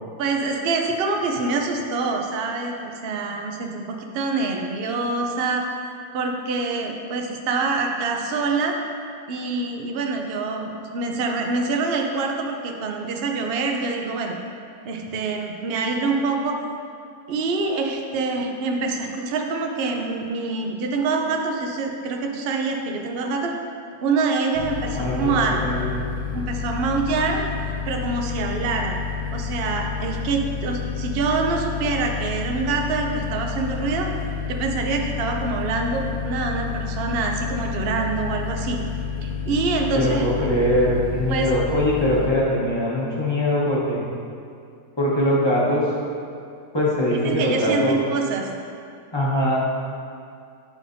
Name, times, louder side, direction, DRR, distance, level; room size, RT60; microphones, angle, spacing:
voice 1, 0.2-5.7 6.1-8.8 9.3-14.4 14.8-16.6 17.3-23.5 24.0-25.6 26.3-27.4 27.9-29.0 29.3-34.1 34.5-38.8 39.2-40.2 41.3-41.5 47.1-48.5, right 3 dB, 85° right, 2 dB, 0.5 m, -25 dB
sound 1, 24.5-42.3, left 6 dB, 80° left, 1.2 m, -30 dB
voice 2, 25.0-25.3 25.6-25.9 39.9-44.0 45.0-45.8 46.7-48.0 49.1-49.6, left 1 dB, 20° left, -7 dB, 0.9 m, -22 dB
9.4 x 4.9 x 2.6 m, 2.4 s
omnidirectional pair, 1.8 m